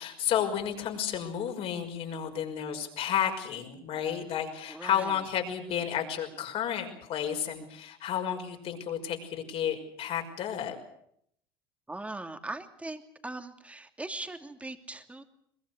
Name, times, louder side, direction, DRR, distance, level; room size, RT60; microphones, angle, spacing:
voice 1, 0.0-10.8, left 9 dB, 55° left, 4 dB, 5.8 m, -32 dB
voice 2, 4.7-5.3 8.2-8.3 11.9-15.2, right 2 dB, 10° right, 7 dB, 2.7 m, -40 dB
23.0 x 21.5 x 8.0 m, 0.71 s
hypercardioid pair, 80°, 12 cm